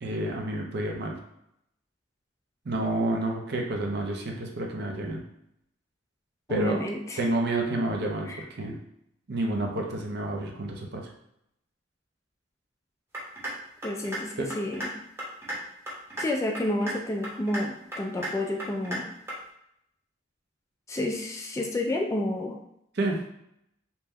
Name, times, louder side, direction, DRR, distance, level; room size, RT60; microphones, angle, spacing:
voice 1, 0.0-1.2 2.7-5.2 6.5-6.8 7.2-8.3 8.6-8.8 9.3-11.1 14.4-14.5 22.9-23.2, right 2 dB, 60° right, 1 dB, 0.5 m, -29 dB
voice 2, 6.5-7.2 8.3-8.4 13.8-14.9 16.2-19.1 20.9-22.6, left 1 dB, 15° left, 1 dB, 0.3 m, -30 dB
sound 1, 13.1-13.5 13.8-14.2 14.5-14.9 15.2-15.6 15.9-16.2 16.5-17.0 17.2-17.6 17.9-18.3 18.6-19.0 19.3-19.4, right 1 dB, 15° right, 0.7 m, -34 dB
2.8 x 2.1 x 3.5 m, 0.77 s
head